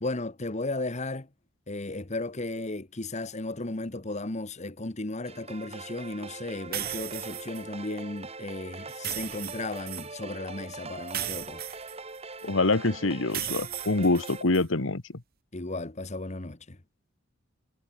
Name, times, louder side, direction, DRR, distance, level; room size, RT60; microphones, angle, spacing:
voice 1, 0.0-1.3 1.7-11.6 15.5-16.8, left 2 dB, 35° left, 1.4 m, -35 dB
sound 1, 5.3-14.4, right 3 dB, 30° right, 6.6 m, -42 dB
sound 2, 6.7-7.6 8.9-10.1 11.1-12.4 13.3-14.6, right 12 dB, 50° right, 1.8 m, -36 dB
voice 2, 12.4-15.2, left 2 dB, 70° left, 1.5 m, -25 dB
head